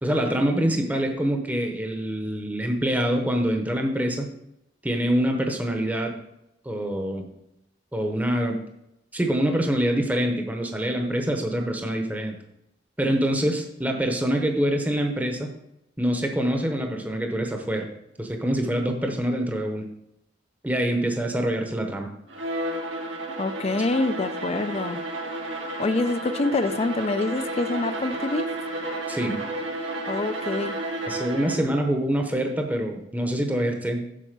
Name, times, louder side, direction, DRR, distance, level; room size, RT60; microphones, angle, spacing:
voice 1, 0.0-4.3 4.8-6.1 6.6-7.3 7.9-8.6 9.1-12.4 13.0-15.5 16.0-17.9 18.2-19.8 20.6-22.1 29.1-29.4 31.0-34.0, right 1 dB, 10° right, 3 dB, 0.8 m, -25 dB
Bowed string instrument, 22.3-31.8, right 1 dB, 85° right, 1.6 m, -32 dB
voice 2, 23.4-25.0 25.8-28.5 30.0-30.8, left 2 dB, 35° left, 12 dB, 0.4 m, -26 dB
7.6 x 4.4 x 6.6 m, 0.84 s
head